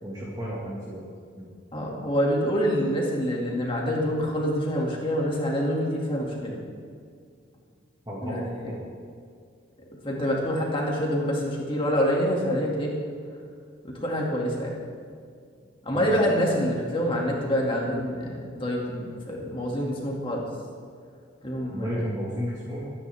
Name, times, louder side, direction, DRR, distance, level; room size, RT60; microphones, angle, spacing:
voice 1, 0.0-1.0 1.4-1.5 8.1-8.8 15.9-16.6 21.7-22.9, equal, 20° right, -6 dB, 2.0 m, -33 dB
voice 2, 1.7-6.6 8.2-8.7 10.0-13.0 13.8-14.8 15.8-20.4 21.4-22.0, equal, 25° left, -2 dB, 2.4 m, -26 dB
22.5 x 10.0 x 3.6 m, 2.2 s
head